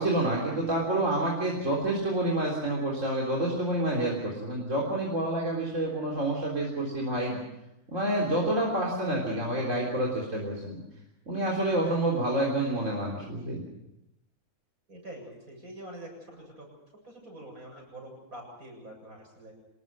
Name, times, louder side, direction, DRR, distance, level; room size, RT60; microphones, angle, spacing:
voice 1, 0.0-7.4 7.9-10.8 11.3-13.6, right 1 dB, 55° right, -3 dB, 4.1 m, -28 dB
voice 2, 14.9-16.7 17.0-19.5, right 1 dB, 70° right, 1 dB, 8.0 m, -45 dB
26.5 x 20.0 x 6.3 m, 0.87 s
omnidirectional pair, 1.6 m